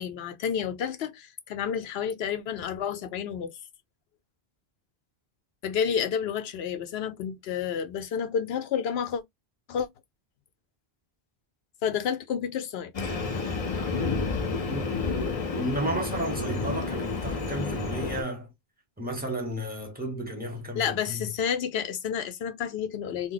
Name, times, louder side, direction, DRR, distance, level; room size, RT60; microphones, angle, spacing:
voice 1, 0.0-3.6 5.6-9.2 9.7-9.9 11.8-13.1 20.8-23.3, left 7 dB, 80° left, 0.8 m, -30 dB
Train, 12.9-18.2, left 4 dB, 40° left, 0.6 m, -30 dB
voice 2, 15.5-18.5 19.0-21.3, right 1 dB, 10° right, 0.8 m, -33 dB
2.3 x 2.1 x 3.8 m
omnidirectional pair, 1.0 m